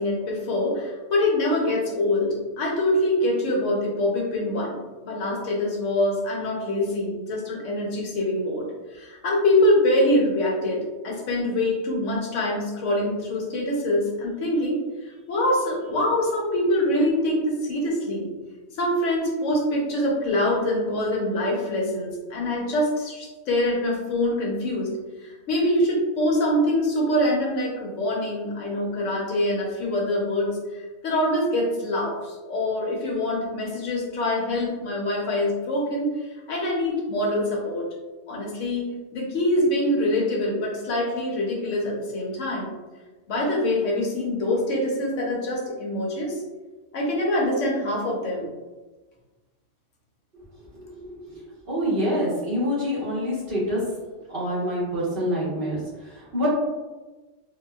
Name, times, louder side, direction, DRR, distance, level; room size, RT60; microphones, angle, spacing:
voice 1, 0.0-4.8 5.0-8.6 8.9-14.8 15.3-18.3 18.8-24.9 25.2-30.6 31.0-36.1 36.5-37.9 38.3-38.8 39.1-42.7 43.3-46.3 46.9-48.5, left 1 dB, 80° left, -2 dB, 1.1 m, -24 dB
voice 2, 50.7-53.8 54.3-55.8 56.0-56.5, equal, 50° right, -8 dB, 1.3 m, -27 dB
3.6 x 2.2 x 2.3 m, 1.2 s
omnidirectional pair, 1.3 m